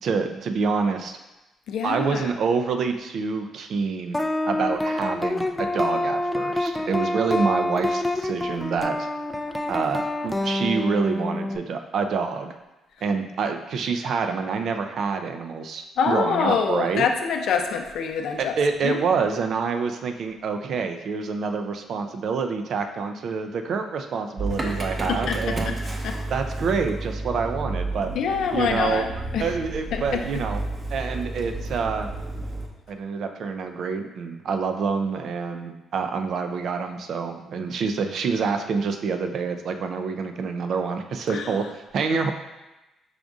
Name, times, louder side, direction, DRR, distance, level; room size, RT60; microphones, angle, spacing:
voice 1, 0.0-1.2 1.8-4.2 4.5-9.0 9.7-12.5 13.0-17.0 18.4-25.8 26.3-28.1 28.5-29.1 29.4-30.6 30.9-32.1 32.9-42.3, right 5 dB, 65° right, 6 dB, 0.4 m, -27 dB
voice 2, 1.7-2.3 16.0-18.5 18.8-19.0 24.7-24.8 25.1-25.6 26.0-26.2 28.1-29.1 29.3-29.5 29.9-30.4 41.3-41.5, left 6 dB, 75° left, 4 dB, 0.4 m, -25 dB
sound 1, 4.1-11.6, left 1 dB, 10° left, 0.3 m, -26 dB
Motor vehicle (road) / Engine starting, 24.4-32.7, right 2 dB, 30° right, 0.7 m, -31 dB
5.0 x 2.5 x 3.5 m, 1.0 s
cardioid pair, 90°, 0 cm